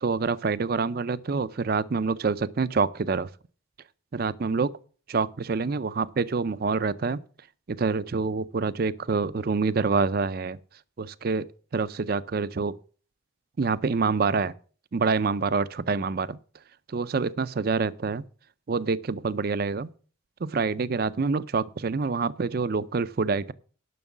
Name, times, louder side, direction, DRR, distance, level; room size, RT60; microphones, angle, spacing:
voice 1, 0.0-3.3 4.1-4.7 5.1-7.2 7.7-10.6 11.0-11.5 11.7-12.7 13.6-14.5 14.9-16.4 16.9-18.2 18.7-19.9 20.4-23.5, right 4 dB, 45° right, 0.4 m, -26 dB
11.0 x 6.1 x 7.2 m
head